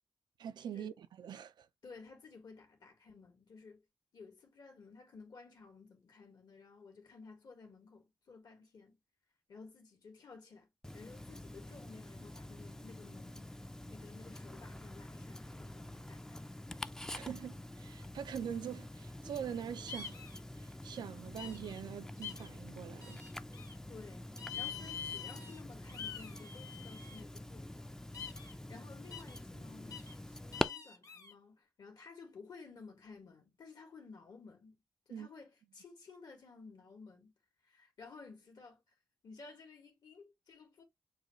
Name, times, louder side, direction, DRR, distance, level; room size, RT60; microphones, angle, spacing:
voice 1, 0.4-1.7 17.1-20.2 20.6-23.2 35.1-35.3, right 8 dB, 90° right, 0.4 m, -43 dB
voice 2, 1.8-3.8 4.1-9.0 9.5-13.5 13.9-16.4 23.9-24.3 24.5-34.8 35.1-37.3 37.6-38.8 39.2-40.8, left 4 dB, 70° left, 1.7 m, -55 dB
Tick-tock, 10.8-30.6, left 1 dB, 10° left, 0.4 m, -46 dB
sound 1, 19.9-20.4 21.4-21.8 22.2-22.5 23.0-23.7 24.4-25.6 25.9-27.2 28.1-28.5 29.1-29.4 29.9-30.1 30.5-31.3, left 7 dB, 50° left, 1.0 m, -45 dB
6.5 x 2.3 x 2.9 m
cardioid pair, 65°, 7 cm